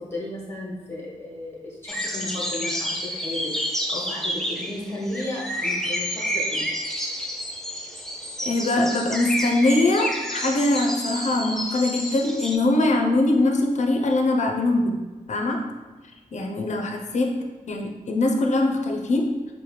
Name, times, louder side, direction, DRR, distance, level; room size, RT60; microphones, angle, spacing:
voice 1, 0.1-3.5 3.9-6.6, left 1 dB, 20° left, -5 dB, 1.3 m, -34 dB
sound 1, 1.9-12.6, equal, 5° left, 0.4 m, -30 dB
voice 2, 8.4-15.0 15.3-15.6 16.3-17.3 17.7-19.3, left 2 dB, 60° left, 2 dB, 0.5 m, -22 dB
4.3 x 2.1 x 3.2 m, 1.3 s
wide cardioid pair, 85°, 13 cm